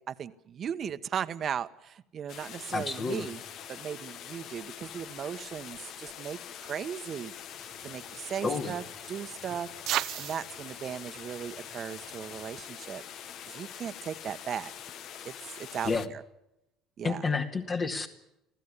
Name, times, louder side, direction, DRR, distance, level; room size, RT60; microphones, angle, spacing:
voice 1, 0.0-3.4 3.7-7.3 7.8-9.7 10.1-13.0 13.5-14.7 15.2-15.9 17.0-17.3, right 8 dB, 50° right, 10 dB, 1.2 m, -37 dB
sound 1, 2.3-16.1, left 9 dB, 60° left, 1.4 m, -44 dB
voice 2, 2.7-3.3 8.4-8.8 15.8-16.1 17.0-18.1, left 4 dB, 40° left, 2 dB, 2.1 m, -30 dB
sound 2, 7.5-12.6, right 13 dB, 65° right, 0.9 m, -39 dB
25.5 x 15.5 x 9.7 m, 0.85 s
supercardioid pair, 80°, 0 cm